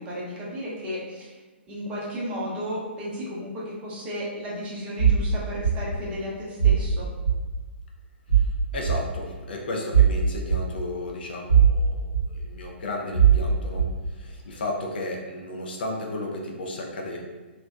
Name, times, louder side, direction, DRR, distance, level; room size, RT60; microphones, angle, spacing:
voice 1, 0.0-1.4 1.7-7.1, equal, 20° right, -6 dB, 0.6 m, -34 dB
sound 1, 5.0-5.2 5.6-5.8 6.6-6.8 7.3-7.4 8.3-8.5 8.9-9.0 9.9-10.1 10.5-10.6 11.5-11.8 12.1-12.2 13.1-13.4 13.8-13.9, right 8 dB, 50° right, 0.8 m, -18 dB
voice 2, 8.7-17.2, left 1 dB, 55° left, 0 dB, 0.4 m, -34 dB
2.6 x 2.0 x 2.3 m, 1.2 s
figure-of-eight pair, 120°, 6 cm